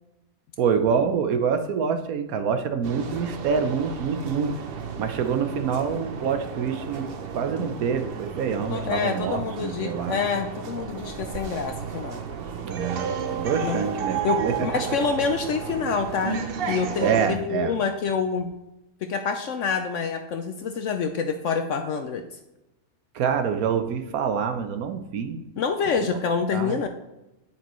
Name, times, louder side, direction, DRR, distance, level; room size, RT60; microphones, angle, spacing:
voice 1, 0.6-4.5 5.0-7.1 7.3-10.2 12.6-14.5 17.0-17.7 23.1-25.4 26.5-26.8, right 6 dB, 75° right, 8 dB, 1.2 m, -26 dB
sound 1, 2.8-17.3, right 6 dB, 55° right, 0.7 m, -33 dB
voice 2, 8.7-12.2 13.6-13.8 14.2-18.5 19.1-22.2 25.6-26.9, left 5 dB, 65° left, 6 dB, 0.8 m, -27 dB
8.7 x 8.4 x 3.1 m, 0.95 s
omnidirectional pair, 1.6 m